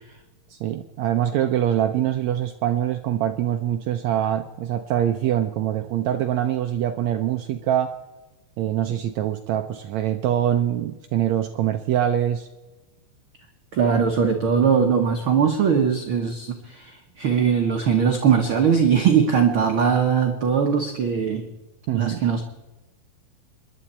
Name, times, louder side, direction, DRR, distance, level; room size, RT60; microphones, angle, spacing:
voice 1, 0.5-7.9 8.6-12.5 21.9-22.2, right 11 dB, 90° right, 7 dB, 1.5 m, -24 dB
voice 2, 13.7-21.5 21.9-22.4, right 7 dB, 65° right, 3 dB, 1.3 m, -20 dB
27.0 x 11.0 x 4.3 m, 1.1 s
omnidirectional pair, 4.1 m